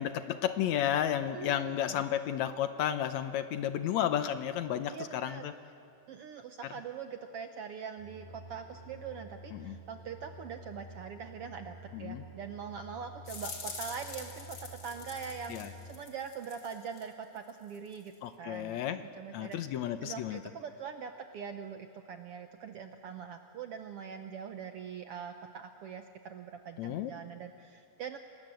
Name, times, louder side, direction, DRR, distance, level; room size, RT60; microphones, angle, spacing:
voice 1, 0.0-5.5 9.5-9.8 11.9-12.2 15.5-15.7 18.2-19.0 19.3-20.4 26.8-27.1, left 10 dB, 70° left, 10 dB, 2.0 m, -32 dB
voice 2, 1.3-2.0 4.9-5.4 6.1-18.8 19.2-19.6 20.0-28.2, right 6 dB, 70° right, 7 dB, 1.4 m, -43 dB
sound 1, 8.0-15.9, right 1 dB, 10° left, 3.7 m, -50 dB
sound 2, 13.3-17.1 17.4-18.1, left 5 dB, 45° left, 3.0 m, -45 dB
28.5 x 20.0 x 7.8 m, 2.3 s
omnidirectional pair, 3.6 m